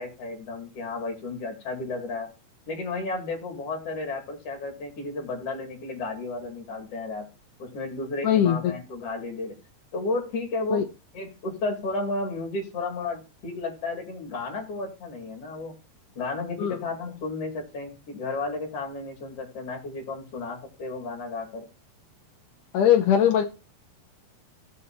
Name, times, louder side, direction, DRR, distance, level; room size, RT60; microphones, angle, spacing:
voice 1, 0.0-2.3 2.7-7.3 7.6-9.5 9.9-15.7 16.2-21.7, left 3 dB, 45° left, 1 dB, 3.1 m, -33 dB
voice 2, 8.2-8.7 10.7-10.8 16.6-16.8 22.7-23.4, left 9 dB, 75° left, 3 dB, 1.8 m, -20 dB
16.5 x 7.5 x 2.8 m, 0.29 s
omnidirectional pair, 4.5 m